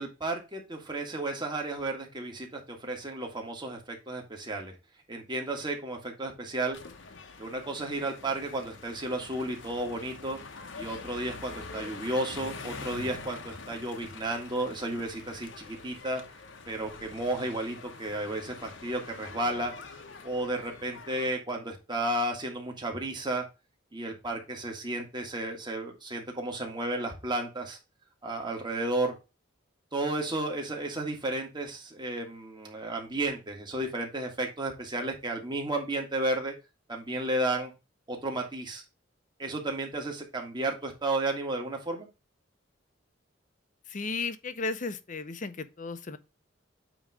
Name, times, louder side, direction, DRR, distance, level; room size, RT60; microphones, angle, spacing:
voice 1, 0.0-4.7 5.1-6.8 7.4-10.4 10.8-16.2 16.7-23.4 23.9-27.8 28.2-29.2 29.9-36.5 36.9-37.7 38.1-38.8 39.4-42.1, right 2 dB, 25° right, 1.7 m, -33 dB
sound 1, 6.7-21.3, left 4 dB, 75° left, 1.0 m, -45 dB
voice 2, 43.9-46.2, left 3 dB, 40° left, 0.7 m, -34 dB
9.0 x 3.1 x 4.7 m
head